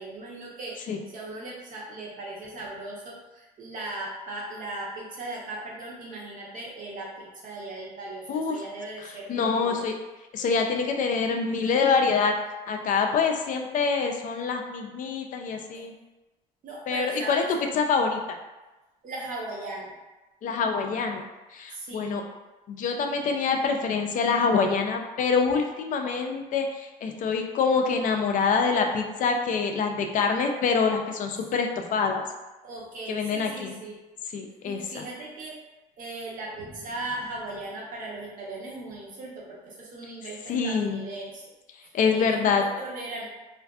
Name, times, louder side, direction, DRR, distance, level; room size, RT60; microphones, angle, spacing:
voice 1, 0.0-9.8 16.6-17.5 19.0-19.9 21.7-22.2 32.6-34.0 34.6-35.6 36.0-41.4 41.8-43.2, right 2 dB, 50° right, -4 dB, 0.8 m, -38 dB
voice 2, 9.3-9.9 10.3-12.3 12.7-15.9 16.9-17.4 17.7-18.2 20.4-21.3 21.5-22.2 22.7-32.2 33.1-33.8 34.3-35.0 40.5-41.1 41.9-42.6, left 5 dB, 50° left, 3 dB, 0.4 m, -25 dB
2.5 x 2.4 x 2.3 m, 1.1 s
cardioid pair, 110°, 17 cm